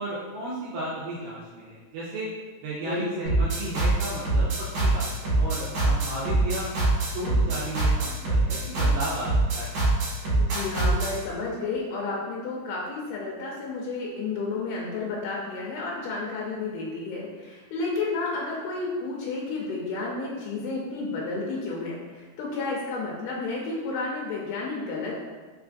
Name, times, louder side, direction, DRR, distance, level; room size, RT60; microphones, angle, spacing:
voice 1, 0.0-2.3 2.6-6.7 7.0-9.3 9.5-9.8, right 1 dB, 80° right, -7 dB, 2.1 m, -34 dB
voice 2, 2.9-3.3 10.4-25.2, left 3 dB, 85° left, -3 dB, 2.5 m, -31 dB
sound 1, 3.3-11.2, right 2 dB, 60° right, 2.3 m, -24 dB
5.6 x 2.5 x 2.4 m, 1.4 s
omnidirectional pair, 4.4 m